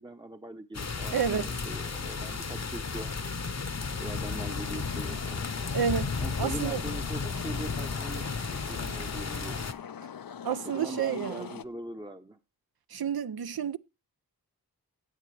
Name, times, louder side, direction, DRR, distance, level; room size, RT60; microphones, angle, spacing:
voice 1, 0.0-3.3 4.0-5.5 6.2-9.7 10.6-12.4, right 2 dB, 10° right, 0.8 m, -42 dB
sound 1, 0.7-9.7, left 4 dB, 45° left, 0.9 m, -34 dB
voice 2, 1.1-1.5 5.7-6.1 6.4-6.8 10.4-11.5 12.9-13.8, right 7 dB, 70° right, 0.6 m, -30 dB
sound 2, 4.0-11.6, left 8 dB, 65° left, 0.6 m, -43 dB
16.0 x 8.3 x 3.3 m
wide cardioid pair, 65°, 37 cm